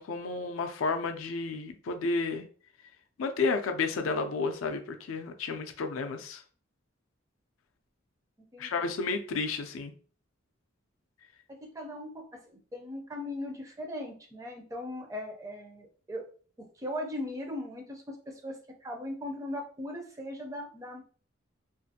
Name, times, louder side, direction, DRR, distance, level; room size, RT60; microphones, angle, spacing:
voice 1, 0.0-2.4 3.2-6.4 8.6-9.9, left 4 dB, 75° left, 0.4 m, -31 dB
voice 2, 8.5-8.9 11.5-16.2 16.8-21.0, left 1 dB, 15° right, 0.4 m, -39 dB
2.4 x 2.4 x 2.6 m
head